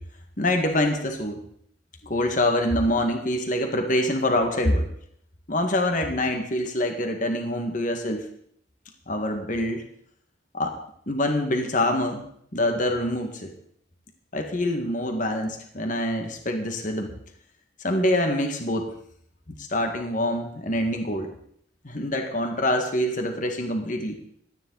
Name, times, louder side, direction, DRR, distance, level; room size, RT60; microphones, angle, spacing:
voice 1, 0.4-1.4 2.0-4.9 5.5-8.2 9.1-9.8 10.5-10.7 11.1-12.2 12.5-13.5 14.3-17.1 17.8-18.9 19.6-21.3 21.8-24.2, left 1 dB, 45° left, 4 dB, 1.8 m, -25 dB
17.0 x 13.0 x 4.0 m, 0.66 s
head